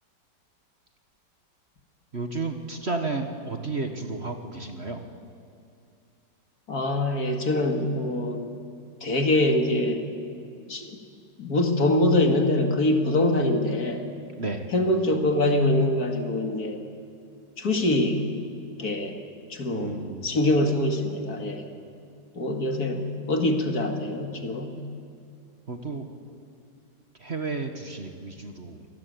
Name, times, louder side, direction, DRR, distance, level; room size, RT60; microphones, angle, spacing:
voice 1, 2.1-5.0 14.4-14.7 19.7-20.3 25.7-26.1 27.2-28.9, right 3 dB, 35° right, 5 dB, 1.6 m, -32 dB
voice 2, 6.7-8.5 9.0-10.0 10.7-10.9 11.4-14.0 14.7-16.8 17.6-18.2 18.8-19.2 19.5-21.7 22.4-24.8, left 1 dB, 55° left, 4 dB, 2.7 m, -24 dB
27.0 x 18.5 x 9.5 m, 2.4 s
omnidirectional pair, 2.0 m